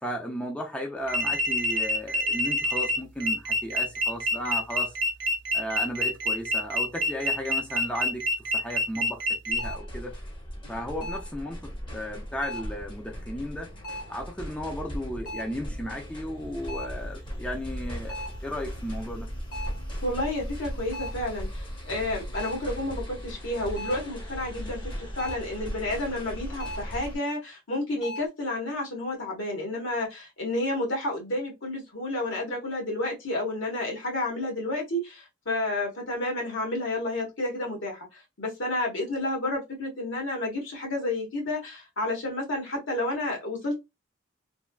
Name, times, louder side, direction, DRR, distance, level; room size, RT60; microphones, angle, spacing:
voice 1, 0.0-5.0 5.5-8.2 8.5-10.2 10.7-13.7 14.1-19.3, equal, 5° left, 0.4 m, -35 dB
sound 1, 1.1-9.6, left 1 dB, 65° right, 0.6 m, -26 dB
sound 2, 9.5-27.2, equal, 25° left, 0.8 m, -38 dB
sound 3, 9.6-10.0 11.0-11.4 12.4-12.8 13.8-14.2 15.3-15.6 16.7-17.1 18.1-18.5 19.5-19.9 20.9-21.3 22.3-22.7 23.8-24.2 25.2-25.6 26.6-27.0 28.0-28.3, equal, 50° left, 1.1 m, -38 dB
voice 2, 20.0-43.8, left 1 dB, 70° left, 1.2 m, -31 dB
3.3 x 2.2 x 2.3 m
head